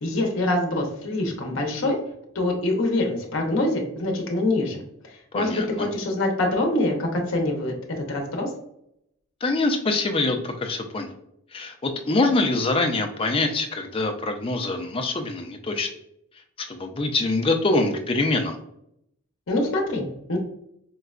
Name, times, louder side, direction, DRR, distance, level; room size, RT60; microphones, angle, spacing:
voice 1, 0.0-2.0 2.3-4.8 5.3-7.7 8.1-8.5 19.5-20.4, left 2 dB, 65° left, 1 dB, 0.7 m, -24 dB
voice 2, 5.3-5.9 9.4-11.1 11.5-15.9 16.6-18.6, left 2 dB, 25° left, 5 dB, 0.4 m, -24 dB
4.5 x 2.1 x 2.4 m, 0.76 s
head